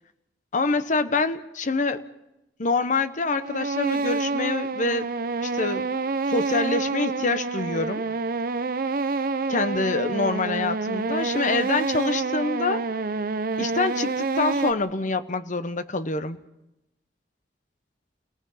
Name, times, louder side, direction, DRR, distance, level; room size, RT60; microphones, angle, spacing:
voice 1, 0.5-2.0 2.6-5.1 5.4-5.9 6.3-8.0 9.5-12.8 13.6-16.4, left 3 dB, 45° left, 11 dB, 1.0 m, -26 dB
sound 1, 3.2-14.7, right 4 dB, 55° right, 0.7 m, -28 dB
30.0 x 18.0 x 5.7 m, 0.92 s
head